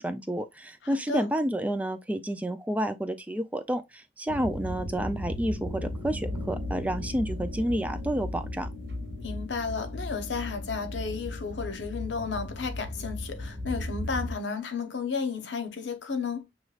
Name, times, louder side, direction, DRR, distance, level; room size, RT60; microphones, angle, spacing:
voice 1, 0.0-8.7, right 1 dB, 10° right, 0.4 m, -30 dB
voice 2, 0.8-1.3 9.2-16.5, left 5 dB, 75° left, 0.8 m, -33 dB
sound 1, 4.3-14.3, left 1 dB, 90° right, 1.6 m, -36 dB
6.5 x 3.0 x 2.4 m
head